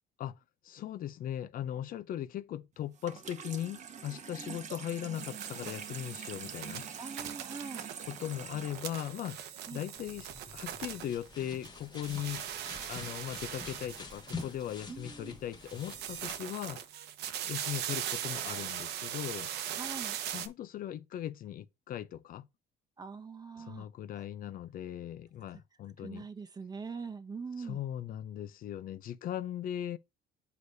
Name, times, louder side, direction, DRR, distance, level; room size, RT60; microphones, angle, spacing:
voice 1, 0.6-6.9 8.1-9.4 9.7-12.4 12.9-16.8 17.5-19.5 20.3-22.5 23.6-26.3 27.6-30.0, left 11 dB, 55° left, 0.5 m, -39 dB
Water tap faucet / Sink (filling or washing), 2.9-10.0, right 7 dB, 45° right, 1.0 m, -46 dB
sound 1, 5.1-11.7 11.9-14.8 15.6-20.5, right 10 dB, 80° right, 0.9 m, -40 dB
voice 2, 7.0-7.9 9.7-9.8 14.9-15.3 19.7-20.2 23.0-23.9 26.0-27.8, right 5 dB, 25° right, 0.8 m, -43 dB
sound 2, 10.0-16.4, left 4 dB, 25° left, 1.2 m, -47 dB
8.0 x 4.9 x 2.7 m
cardioid pair, 110°, 17 cm